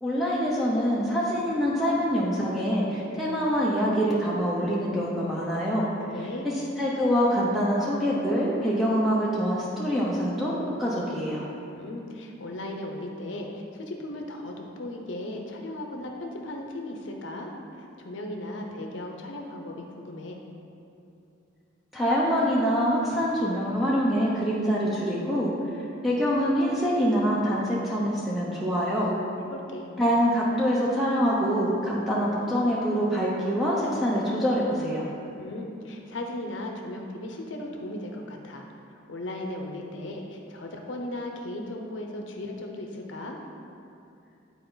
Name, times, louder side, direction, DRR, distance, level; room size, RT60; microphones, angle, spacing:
voice 1, 0.0-5.9 6.8-11.5 21.9-25.5 26.0-29.1 30.0-35.1, equal, ahead, -6 dB, 0.7 m, -25 dB
voice 2, 6.0-6.5 11.8-17.5 18.0-20.4 29.5-29.9 35.4-38.6 39.1-43.4, left 1 dB, 70° left, 1 dB, 0.6 m, -36 dB
9.1 x 4.3 x 3.9 m, 2.7 s
head